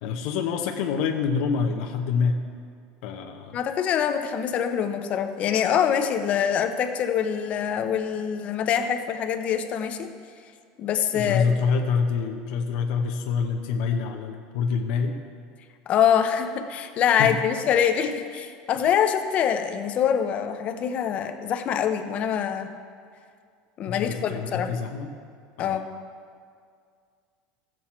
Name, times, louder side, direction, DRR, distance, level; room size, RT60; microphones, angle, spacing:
voice 1, 0.0-2.4 3.0-3.6 11.1-15.2 17.2-17.3 23.9-25.1 25.6-25.8, left 5 dB, 75° left, 3 dB, 0.9 m, -26 dB
voice 2, 3.5-10.1 10.8-11.5 15.9-22.7 23.8-24.7 25.6-25.9, left 8 dB, 35° left, 7 dB, 0.7 m, -24 dB
14.0 x 7.7 x 4.4 m, 2.2 s
cardioid pair, 155°, 4 cm